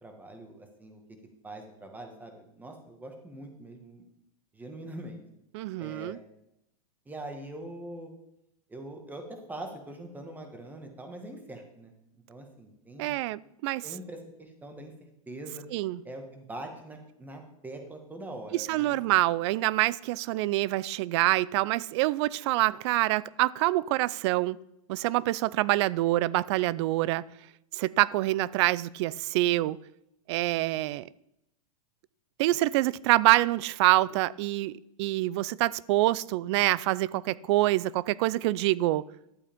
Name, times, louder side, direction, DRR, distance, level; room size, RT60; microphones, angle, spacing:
voice 1, 0.0-1.0 1.4-4.1 4.5-5.2 5.8-6.2 7.1-8.1 8.7-11.9 12.3-13.2 13.8-14.9 15.3-15.6 16.1-19.0, right 1 dB, 10° right, 1.7 m, -43 dB
voice 2, 5.5-6.2 13.0-13.9 15.7-16.0 18.5-24.6 24.9-27.2 27.7-29.8 30.3-31.1 32.4-34.7 35.0-39.0, right 17 dB, 50° right, 0.4 m, -26 dB
12.0 x 8.3 x 3.6 m
hypercardioid pair, 125°, 19 cm